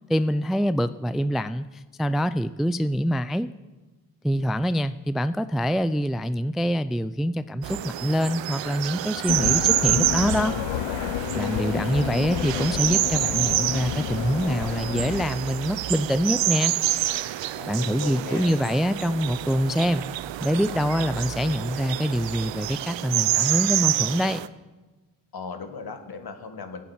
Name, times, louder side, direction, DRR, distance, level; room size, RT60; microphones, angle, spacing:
voice 1, 0.1-3.5 4.2-10.5 11.3-16.7 17.7-20.0 20.4-24.4, equal, ahead, 13 dB, 0.4 m, -25 dB
sound 1, 7.6-24.5, right 14 dB, 70° right, 0.7 m, -28 dB
sound 2, 9.3-15.3, left 15 dB, 85° left, 0.6 m, -30 dB
voice 2, 17.6-18.5 25.3-26.8, left 4 dB, 55° left, 7 dB, 2.0 m, -37 dB
12.0 x 8.6 x 8.8 m, 1.2 s
supercardioid pair, 45°, 45 cm